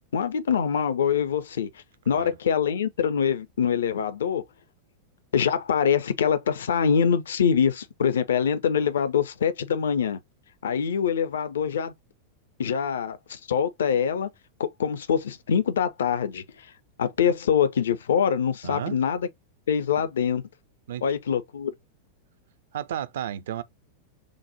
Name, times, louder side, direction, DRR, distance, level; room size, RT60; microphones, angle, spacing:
voice 1, 0.1-1.7 2.1-4.4 5.3-10.2 10.6-11.9 12.6-14.3 14.6-16.7 17.0-19.3 19.7-20.4 21.0-21.7, left 7 dB, 65° left, 0.5 m, -24 dB
voice 2, 18.6-19.0 20.9-21.0 22.7-23.6, right 10 dB, 60° right, 0.4 m, -32 dB
6.4 x 2.1 x 2.8 m
figure-of-eight pair, 90°, 0 cm